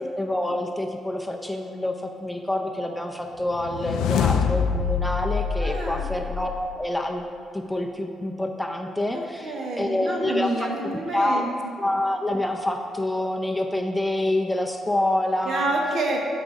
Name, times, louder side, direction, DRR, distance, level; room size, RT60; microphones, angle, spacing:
voice 1, 0.0-7.2 7.5-10.7 11.1-11.4 11.8-15.7, left 1 dB, 5° left, 3 dB, 0.5 m, -27 dB
sound 1, 3.5-6.8, left 6 dB, 85° left, 0.3 m, -25 dB
voice 2, 5.6-6.1 9.1-11.7 15.4-16.2, right 2 dB, 65° right, -1 dB, 1.3 m, -28 dB
12.5 x 4.9 x 2.6 m, 2.5 s
cardioid pair, 90°, 0 cm